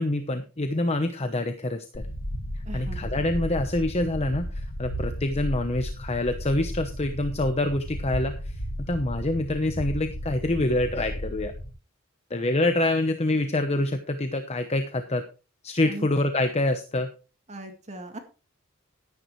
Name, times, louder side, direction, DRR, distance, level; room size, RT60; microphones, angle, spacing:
voice 1, 0.0-2.0 2.7-11.5 12.3-15.2 15.6-17.1, left 2 dB, 30° left, 8 dB, 0.9 m, -26 dB
sound 1, 1.9-11.7, equal, 90° left, 1.9 m, -34 dB
voice 2, 2.7-3.1 15.8-16.1 17.5-18.2, right 1 dB, 35° right, 5 dB, 2.0 m, -39 dB
12.0 x 11.0 x 3.2 m, 0.33 s
head